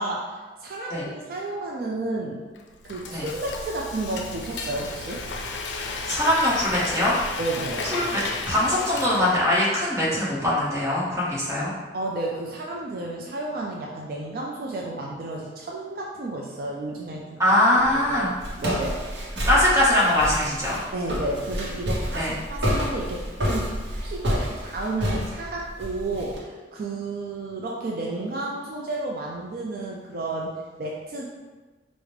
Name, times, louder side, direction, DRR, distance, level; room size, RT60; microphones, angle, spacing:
voice 1, 0.0-2.4 2.8-5.3 7.4-7.9 11.9-17.4 17.8-18.3 18.5-19.5 20.9-23.7 24.0-31.3, right 2 dB, 55° right, -2 dB, 0.4 m, -32 dB
Frying (food), 2.6-9.6, left 3 dB, 80° left, 0.4 m, -33 dB
voice 2, 6.1-7.2 7.8-11.7 17.4-18.3 19.4-20.8 22.1-22.3, left 1 dB, 15° right, -7 dB, 1.0 m, -22 dB
Walk footsteps, 17.8-26.4, equal, 80° right, 0.8 m, -29 dB
4.8 x 2.1 x 3.2 m, 1.3 s
head